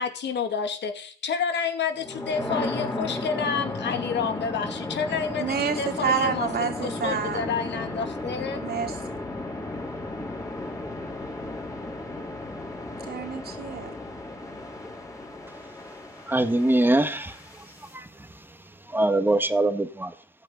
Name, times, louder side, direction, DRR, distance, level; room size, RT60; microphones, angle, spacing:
voice 1, 0.0-8.6, left 6 dB, 60° left, 2.4 m, -29 dB
sound 1, 2.0-17.9, left 2 dB, 15° left, 3.7 m, -34 dB
voice 2, 5.4-7.5 8.6-9.0 13.0-14.0, right 6 dB, 50° right, 3.0 m, -28 dB
voice 3, 16.3-17.4 17.9-18.1 18.9-20.1, right 1 dB, 10° right, 1.7 m, -22 dB
14.5 x 9.1 x 4.0 m
cardioid pair, 90°, 20 cm